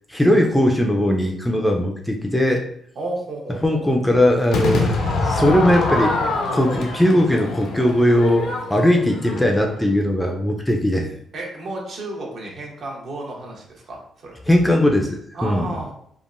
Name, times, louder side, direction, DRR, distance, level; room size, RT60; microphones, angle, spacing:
voice 1, 0.1-2.6 3.6-6.1 6.5-11.1 14.5-15.7, left 1 dB, 5° left, 1 dB, 0.4 m, -19 dB
voice 2, 3.0-3.8 11.3-14.3 15.3-15.9, right 2 dB, 60° right, -2 dB, 0.9 m, -32 dB
Crowd / Fireworks, 4.5-9.8, left 2 dB, 70° left, 0.5 m, -24 dB
3.5 x 2.1 x 2.5 m, 0.66 s
cardioid pair, 90°, 0 cm